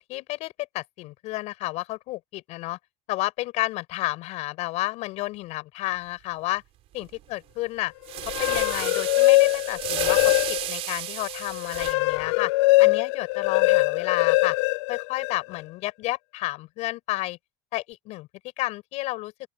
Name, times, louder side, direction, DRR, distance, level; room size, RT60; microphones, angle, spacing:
voice 1, 0.0-2.8 3.1-6.6 6.9-7.9 8.2-10.2 10.5-12.5 12.8-14.6 14.9-17.4 17.7-18.3 18.6-19.3, left 19 dB, 55° left, 7.3 m, -31 dB
sound 1, 7.0-7.2 8.1-11.9, right 14 dB, 45° right, 3.9 m, -33 dB
sound 2, 8.2-10.9 11.3-15.6, left 21 dB, 80° left, 0.6 m, -22 dB
open air
cardioid pair, 150°, 14 cm